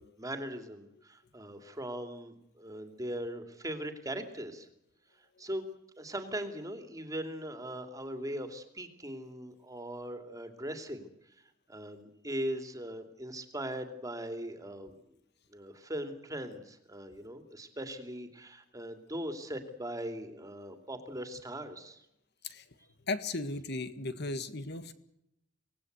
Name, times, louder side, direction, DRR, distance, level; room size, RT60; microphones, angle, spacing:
voice 1, 0.0-4.7 5.1-5.7 6.0-14.9 15.5-22.0, right 1 dB, 15° right, 7 dB, 2.7 m, -40 dB
voice 2, 23.1-24.9, left 2 dB, 55° left, 12 dB, 1.8 m, -36 dB
25.0 x 19.0 x 8.1 m, 0.82 s
head